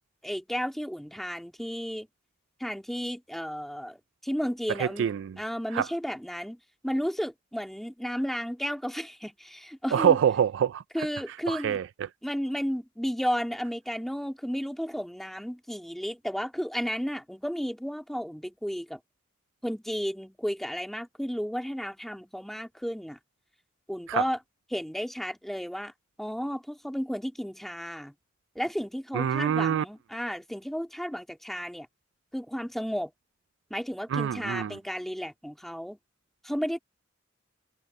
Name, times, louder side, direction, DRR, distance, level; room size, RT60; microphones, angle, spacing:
voice 1, 0.2-2.1 2.6-4.0 4.2-5.1 5.4-6.6 6.8-10.2 10.9-11.8 12.2-19.0 19.6-23.2 23.9-24.4 24.7-25.9 26.2-28.1 28.6-31.9 32.3-33.1 33.7-36.0 36.4-36.8, equal, ahead, 1.9 m, -33 dB
voice 2, 4.8-5.4 5.7-5.9 9.9-12.1 24.1-24.3 29.1-29.8 34.1-34.8, right 8 dB, 65° right, 0.3 m, -26 dB
head